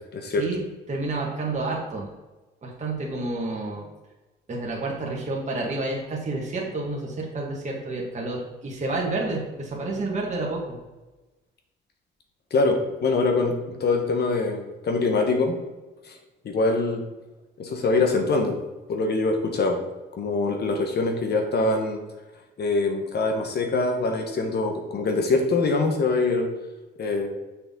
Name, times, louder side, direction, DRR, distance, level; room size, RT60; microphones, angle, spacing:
voice 1, 0.1-0.5 12.5-15.6 16.0-16.2 16.4-17.0 17.6-18.6 18.9-19.8 20.2-22.0 22.6-26.5 27.0-27.3, left 3 dB, 55° left, 3 dB, 1.2 m, -24 dB
voice 2, 0.9-2.1 2.6-3.8 4.5-10.8, right 2 dB, 35° right, -2 dB, 1.8 m, -29 dB
6.6 x 5.8 x 3.7 m, 1.1 s
cardioid pair, 90°, 20 cm